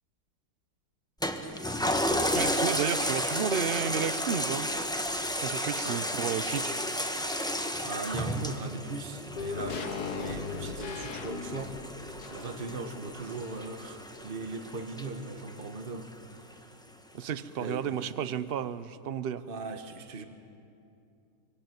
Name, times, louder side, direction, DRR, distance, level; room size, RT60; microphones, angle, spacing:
Toilet flush, 1.2-16.0 16.5-16.6, equal, 5° left, 1.2 m, -33 dB
voice 1, 2.3-4.7 5.4-6.8 17.1-19.4, right 8 dB, 45° right, 14 dB, 0.8 m, -32 dB
voice 2, 7.8-16.1 17.6-17.9 19.5-20.2, right 3 dB, 30° right, 7 dB, 1.6 m, -39 dB
sound 1, 9.4-13.9 14.1-14.2, left 5 dB, 65° left, 1.9 m, -38 dB
24.0 x 23.5 x 9.3 m, 2.5 s
omnidirectional pair, 1.8 m